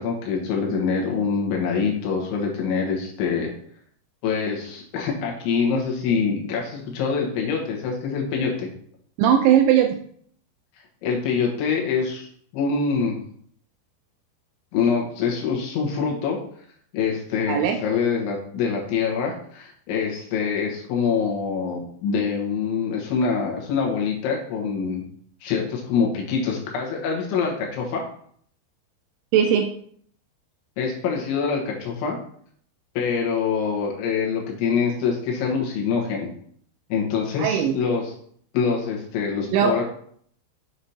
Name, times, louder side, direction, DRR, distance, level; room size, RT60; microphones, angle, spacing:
voice 1, 0.0-3.5 4.2-8.7 11.0-12.3 12.5-13.2 14.7-16.4 16.9-25.0 25.4-28.0 30.8-32.2 33.0-36.3 36.9-38.1 38.5-39.8, left 5 dB, 75° left, -1 dB, 3.5 m, -25 dB
voice 2, 9.2-10.0 17.5-17.8 29.3-29.7 37.4-37.8 39.5-39.8, right 9 dB, 85° right, 5 dB, 2.7 m, -18 dB
7.8 x 7.1 x 2.8 m, 0.62 s
omnidirectional pair, 5.8 m